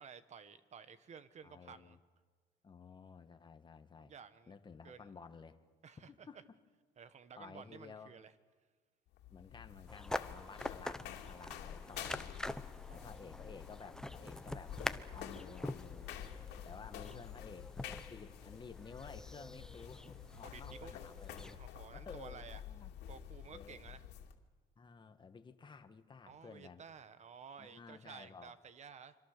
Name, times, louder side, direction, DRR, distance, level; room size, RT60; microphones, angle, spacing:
voice 1, 0.0-2.0 4.0-4.5 4.8-5.1 5.8-6.3 7.0-8.3 12.8-13.6 20.4-20.9 21.5-22.6 23.1-24.0 26.3-29.2, right 6 dB, 40° right, 13 dB, 1.5 m, -54 dB
voice 2, 1.4-2.0 2.6-4.1 4.5-5.6 6.1-6.6 7.4-8.1 9.3-12.3 12.9-14.7 15.1-16.1 16.6-21.6 21.9-22.9 23.5-23.9 24.7-26.8 27.6-28.5, left 5 dB, 25° left, 8 dB, 1.7 m, -54 dB
sound 1, 9.1-24.4, left 10 dB, 85° left, 2.5 m, -49 dB
sound 2, 9.9-21.6, left 1 dB, 5° left, 0.9 m, -46 dB
26.0 x 25.5 x 6.8 m, 1.5 s
cardioid pair, 110°, 17 cm